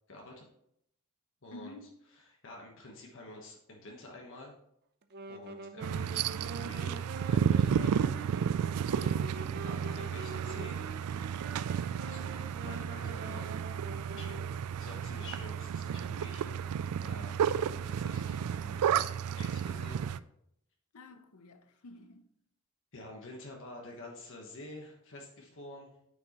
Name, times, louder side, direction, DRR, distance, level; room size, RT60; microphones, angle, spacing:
voice 1, 0.1-0.5 1.4-1.8 2.4-4.6 5.3-7.0 7.3-8.0 9.6-10.9 12.1-13.5 14.1-16.4 17.0-17.4 17.8-18.8 19.4-20.0 22.9-25.9, left 2 dB, 60° left, 1.2 m, -48 dB
voice 2, 1.5-2.0 8.8-9.9 12.2-12.6 20.9-22.3, left 2 dB, 80° left, 0.7 m, -51 dB
Wind instrument woodwind instrument, 5.0-14.7, right 3 dB, 50° right, 0.6 m, -46 dB
sound 1, 5.8-20.2, right 8 dB, 85° right, 0.3 m, -32 dB
9.2 x 6.2 x 3.0 m
head